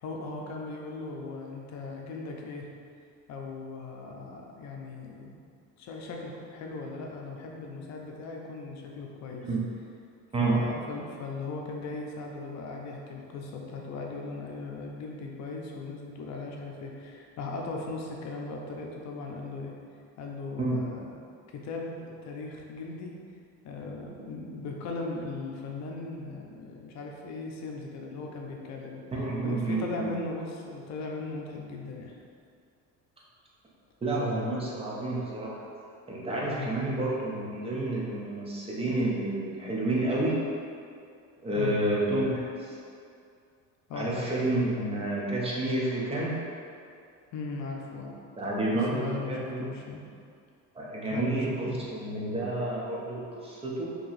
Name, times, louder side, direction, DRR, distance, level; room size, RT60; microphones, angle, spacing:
voice 1, 0.0-2.7 3.3-5.3 5.8-9.5 10.4-19.7 20.2-21.1 21.5-23.2 23.6-29.0 29.4-32.2 36.5-36.8 41.6-41.8 43.9-44.3 47.3-48.2 48.7-50.0 51.1-51.8, left 3 dB, 55° left, 0 dB, 0.6 m, -38 dB
voice 2, 29.1-30.1 34.0-35.6 36.1-40.4 41.4-42.8 43.9-46.4 48.4-49.7 50.7-53.9, right 2 dB, 20° right, -5 dB, 0.7 m, -29 dB
3.0 x 2.8 x 4.0 m, 2.4 s
cardioid pair, 140°, 32 cm